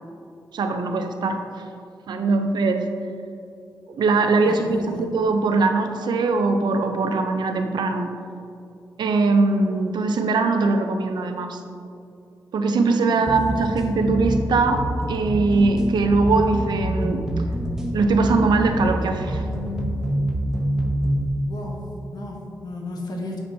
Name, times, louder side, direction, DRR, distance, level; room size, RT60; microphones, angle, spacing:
voice 1, 0.5-1.4 2.1-2.9 3.9-8.1 9.0-11.6 12.5-14.8 15.1-17.3 17.9-19.5, right 3 dB, 85° right, 6 dB, 0.6 m, -21 dB
voice 2, 4.4-5.1 13.2-13.7 21.4-23.4, left 2 dB, 65° left, 0 dB, 1.2 m, -35 dB
sound 1, 13.3-21.3, equal, 10° right, 0.9 m, -26 dB
7.7 x 6.1 x 2.7 m, 2.5 s
cardioid pair, 80°, 7 cm